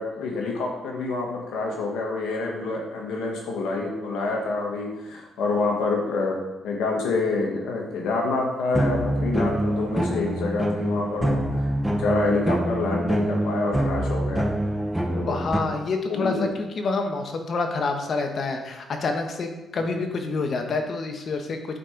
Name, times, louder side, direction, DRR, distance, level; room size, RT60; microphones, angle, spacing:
voice 1, 0.0-6.4 6.6-14.4 15.1-15.7 16.1-16.5, left 3 dB, 85° left, 0 dB, 1.6 m, -27 dB
sound 1, 8.7-15.6, right 1 dB, 10° right, 0.9 m, -25 dB
voice 2, 15.3-21.6, left 3 dB, 50° left, 5 dB, 1.3 m, -27 dB
8.7 x 4.4 x 5.2 m, 1.0 s
cardioid pair, 90°, 0 cm